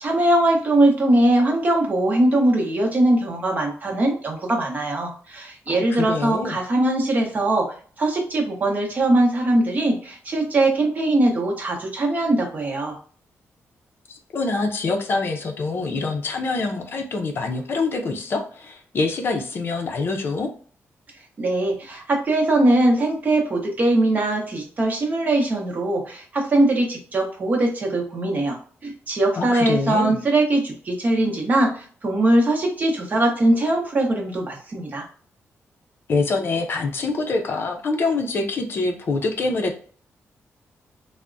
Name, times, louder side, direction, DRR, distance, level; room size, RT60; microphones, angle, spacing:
voice 1, 0.0-13.0 21.4-35.0, right 1 dB, 35° right, 1 dB, 0.7 m, -21 dB
voice 2, 5.7-6.6 14.1-20.5 29.4-30.2 36.1-39.8, left 3 dB, 50° left, 3 dB, 0.5 m, -25 dB
3.3 x 2.0 x 2.5 m, 0.44 s
wide cardioid pair, 150°, 5 cm